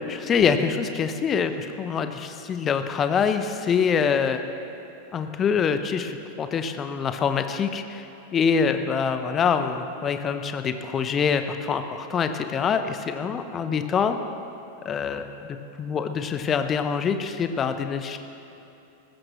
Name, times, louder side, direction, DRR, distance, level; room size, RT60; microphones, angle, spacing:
voice 1, 0.0-4.4 5.1-14.2 14.8-18.2, left 6 dB, 25° left, 9 dB, 0.9 m, -25 dB
19.0 x 15.0 x 3.2 m, 3.0 s
figure-of-eight pair, 90°, 0 cm